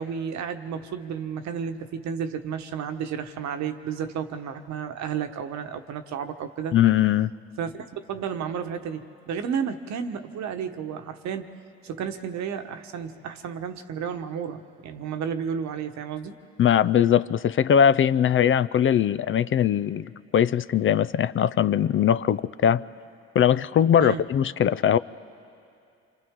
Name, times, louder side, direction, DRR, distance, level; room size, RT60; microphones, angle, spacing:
voice 1, 0.0-6.7 7.6-11.5 11.8-16.4 24.0-24.2, right 7 dB, 65° right, 7 dB, 1.3 m, -32 dB
voice 2, 6.7-7.3 16.6-22.8 23.3-25.0, left 9 dB, 45° left, 16 dB, 0.5 m, -21 dB
27.5 x 26.5 x 3.7 m, 2.5 s
supercardioid pair, 65°, 29 cm